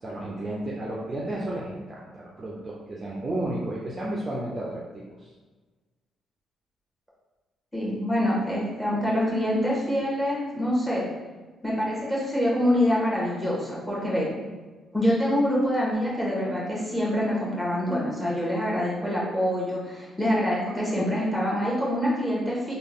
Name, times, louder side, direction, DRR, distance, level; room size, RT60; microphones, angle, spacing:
voice 1, 0.0-5.3, right 1 dB, 30° right, -4 dB, 0.6 m, -32 dB
voice 2, 7.7-11.1 11.6-14.3 14.9-22.7, equal, ahead, -6 dB, 1.4 m, -25 dB
3.5 x 2.4 x 3.6 m, 1.3 s
cardioid pair, 90°, 0 cm